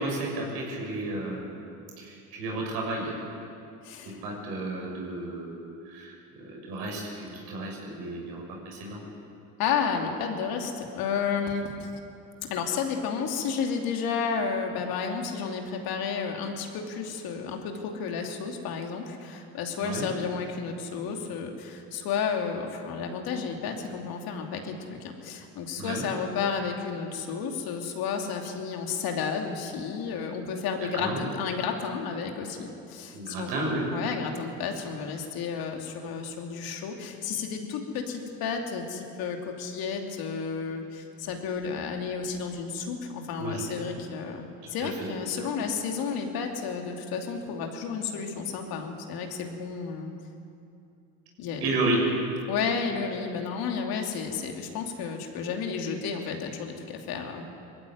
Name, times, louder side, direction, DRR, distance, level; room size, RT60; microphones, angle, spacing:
voice 1, 0.0-1.5 2.0-3.2 4.0-9.0 19.8-20.1 25.8-26.0 30.8-31.2 33.1-33.9 43.4-43.7 44.8-45.1 51.6-52.0, right 2 dB, 75° right, -1 dB, 6.6 m, -32 dB
voice 2, 3.8-4.2 9.6-11.9 12.5-33.5 33.9-50.1 51.4-51.6 52.5-57.5, left 6 dB, 70° left, 2 dB, 2.9 m, -32 dB
21.0 x 15.0 x 9.5 m, 2.6 s
supercardioid pair, 75°, 38 cm